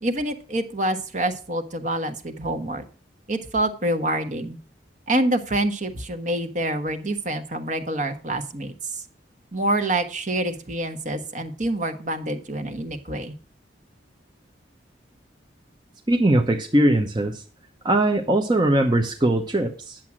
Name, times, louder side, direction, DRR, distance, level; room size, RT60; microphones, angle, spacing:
voice 1, 0.0-2.8 3.3-4.6 5.1-9.0 9.5-13.3, right 1 dB, 45° right, 7 dB, 1.3 m, -26 dB
voice 2, 16.1-17.4 17.8-20.0, right 1 dB, 25° right, 2 dB, 0.9 m, -20 dB
10.5 x 7.5 x 6.0 m, 0.36 s
head